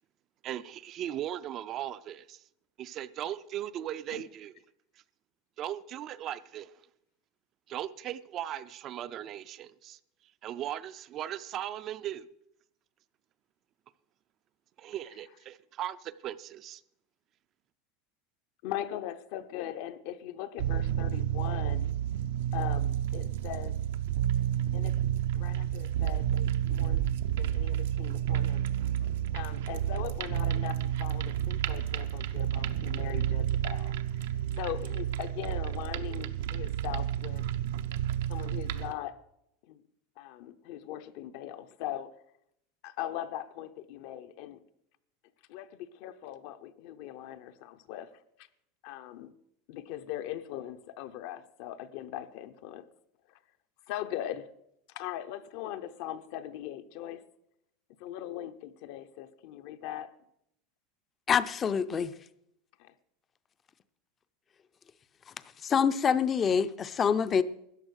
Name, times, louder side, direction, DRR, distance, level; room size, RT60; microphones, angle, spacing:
voice 1, 0.4-2.4 2.8-4.5 5.6-6.7 7.7-10.0 10.4-12.3 14.8-16.8, right 11 dB, 35° right, 0.4 m, -38 dB
voice 2, 18.6-21.9 22.5-23.8 24.7-25.0 25.3-27.0 27.3-28.7 29.3-33.9 34.5-37.4 38.3-39.2 39.6-39.8 40.2-42.1 42.8-44.6 45.5-48.5 48.8-49.3 49.7-52.8 53.3-53.4 53.9-54.5 54.9-57.2 58.0-60.1 62.8-62.9, left 12 dB, 60° left, 0.8 m, -40 dB
sound 1, 20.6-38.9, right 11 dB, 85° right, 0.8 m, -30 dB
voice 3, 61.3-62.1 65.6-67.4, left 7 dB, 20° left, 0.5 m, -26 dB
13.5 x 9.3 x 6.4 m
supercardioid pair, 160°, 0 cm